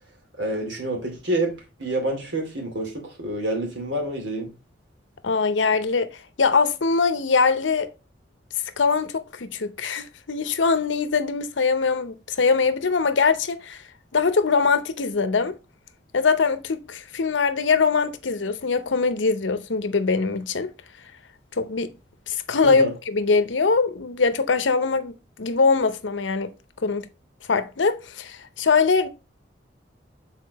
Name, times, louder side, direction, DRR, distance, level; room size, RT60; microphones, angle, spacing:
voice 1, 0.4-1.5 1.8-4.5 22.6-22.9, right 1 dB, 75° right, 2.5 m, -27 dB
voice 2, 5.2-6.1 6.4-7.9 8.8-13.8 14.1-15.6 16.1-20.7 21.6-21.9 22.3-25.1 25.4-26.5 26.8-27.1 27.5-29.1, left 4 dB, 85° left, 0.7 m, -22 dB
6.7 x 4.2 x 4.0 m
head